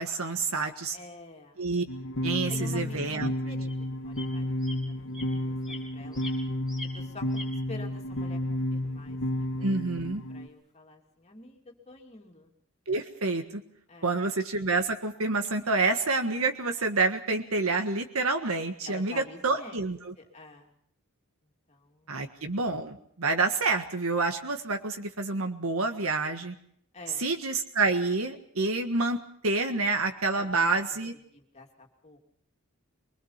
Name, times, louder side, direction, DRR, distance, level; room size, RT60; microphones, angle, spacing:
voice 1, 0.0-1.0 1.6-1.8 2.2-3.3 9.6-10.2 12.9-13.6 14.0-20.1 22.1-26.5 27.2-31.1, right 3 dB, 85° right, 6 dB, 1.6 m, -28 dB
voice 2, 0.9-1.6 2.5-6.2 6.9-7.3 7.7-9.7 10.3-12.5 13.9-14.2 18.8-19.9 20.2-20.7 21.4-22.3 26.9-27.3 30.3-30.8 31.3-32.2, left 2 dB, 30° left, 1 dB, 2.9 m, -48 dB
sound 1, 1.9-10.5, left 1 dB, 60° left, 1.7 m, -32 dB
sound 2, 3.7-3.8 4.1-4.3 4.6-4.8 5.1-5.3 5.6-5.8 6.1-6.4 6.7-6.9 7.3-7.5, left 2 dB, 5° right, 4.6 m, -42 dB
24.0 x 21.0 x 5.9 m, 0.67 s
head